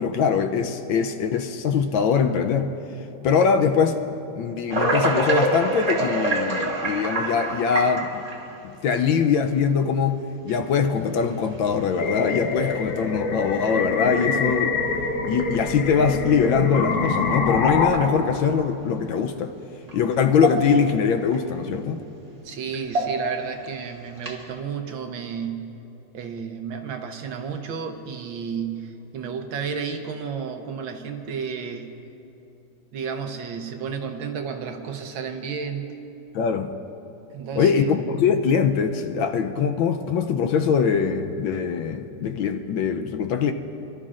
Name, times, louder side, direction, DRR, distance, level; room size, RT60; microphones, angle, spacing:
voice 1, 0.0-2.7 3.2-8.2 8.6-14.8 15.2-19.5 19.9-22.0 36.3-36.7 37.6-43.5, left 6 dB, 75° left, 6 dB, 1.3 m, -22 dB
sound 1, 4.7-8.6 9.3-9.4 10.5-10.6 11.3-11.6 12.0-12.1 12.6-12.8 14.1-14.2 17.0-17.1 17.8-18.5 19.9-20.0 20.3-20.9 21.3-21.4 22.7-23.5 24.2-24.5, right 2 dB, 25° right, 1.0 m, -26 dB
sound 2, 12.0-17.9, left 4 dB, 55° left, 1.2 m, -25 dB
voice 2, 22.4-25.7 26.1-31.9 32.9-35.9 37.3-37.9, right 6 dB, 70° right, 5 dB, 1.5 m, -32 dB
29.5 x 12.5 x 2.5 m, 2.9 s
omnidirectional pair, 2.4 m